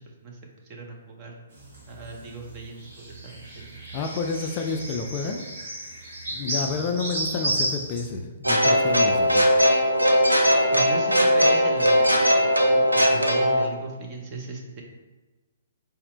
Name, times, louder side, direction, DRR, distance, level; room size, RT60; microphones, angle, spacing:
voice 1, 0.7-1.3 1.9-3.8 10.7-14.8, right 2 dB, 30° right, 0 dB, 0.7 m, -38 dB
sound 1, 1.5-8.1, right 1 dB, 55° right, 1.2 m, -33 dB
voice 2, 3.9-5.4 6.3-9.5, left 4 dB, 30° left, 3 dB, 0.3 m, -29 dB
sound 2, 8.4-13.7, equal, 90° right, 0.5 m, -19 dB
4.1 x 2.1 x 3.9 m, 1.2 s
figure-of-eight pair, 125°, 0 cm